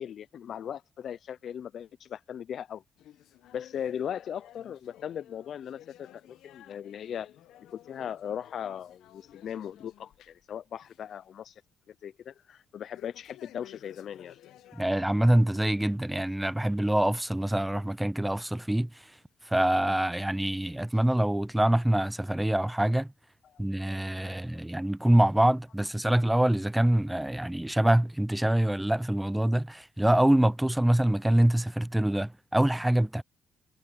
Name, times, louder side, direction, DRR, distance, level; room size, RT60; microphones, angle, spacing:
voice 1, 0.0-2.8 3.5-7.3 7.7-11.5 11.9-14.4 23.7-23.8 24.2-24.6, left 9 dB, 65° left, 0.4 m, -38 dB
sound 1, 3.0-10.5 10.8-11.2 11.5-11.6 12.9-15.6 16.0-16.2 16.9-17.0 17.9-18.0 18.8-18.9, left 12 dB, 85° left, 1.0 m, -55 dB
voice 2, 14.7-18.9 19.5-23.1 23.6-33.2, right 1 dB, 5° right, 0.6 m, -25 dB
cardioid pair, 90°, 0 cm